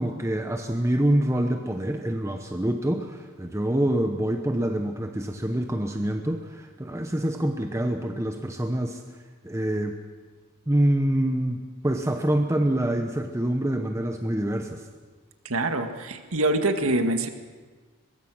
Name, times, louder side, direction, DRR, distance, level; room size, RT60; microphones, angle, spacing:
voice 1, 0.0-9.0 9.4-10.0 10.7-14.8, right 1 dB, 15° right, 4 dB, 1.0 m, -26 dB
voice 2, 15.5-17.3, right 2 dB, 70° right, 7 dB, 1.8 m, -25 dB
23.0 x 22.0 x 6.3 m, 1.4 s
head